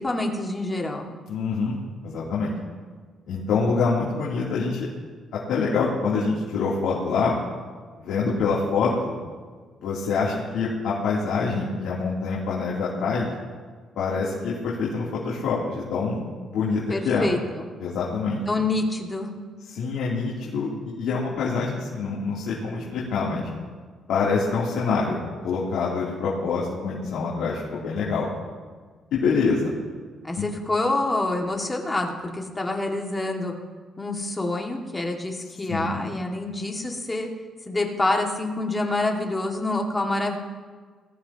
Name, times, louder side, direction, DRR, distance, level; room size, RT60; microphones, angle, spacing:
voice 1, 0.0-1.1 16.9-17.7 18.5-19.3 30.2-33.5 34.0-37.3 37.7-40.4, left 2 dB, 15° left, 1 dB, 2.1 m, -27 dB
voice 2, 1.3-1.8 2.0-2.5 3.3-4.9 5.3-7.4 8.0-9.1 9.8-13.3 13.9-16.2 16.5-17.3 17.8-18.4 19.6-23.5 24.1-28.3 29.1-29.7 30.3-30.5 35.7-36.0, left 4 dB, 80° left, -7 dB, 3.2 m, -25 dB
20.5 x 14.5 x 3.0 m, 1.5 s
cardioid pair, 100°, 0 cm